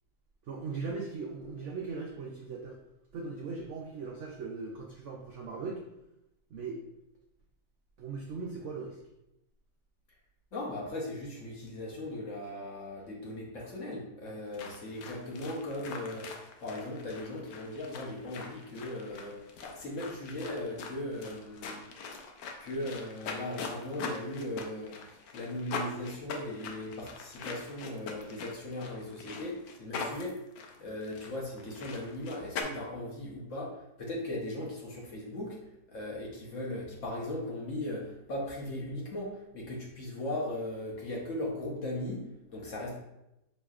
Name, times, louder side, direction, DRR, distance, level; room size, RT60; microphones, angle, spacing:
voice 1, 0.5-2.8 3.1-5.8 6.5-6.8 8.0-9.0, right 4 dB, 80° right, 0 dB, 0.6 m, -39 dB
voice 2, 10.5-21.8 22.6-30.4 30.8-35.6 35.9-43.0, left 1 dB, 55° left, -2 dB, 1.0 m, -38 dB
sound 1, 14.5-32.6, left 5 dB, 80° left, 1.2 m, -42 dB
5.7 x 3.1 x 2.4 m, 0.88 s
omnidirectional pair, 1.9 m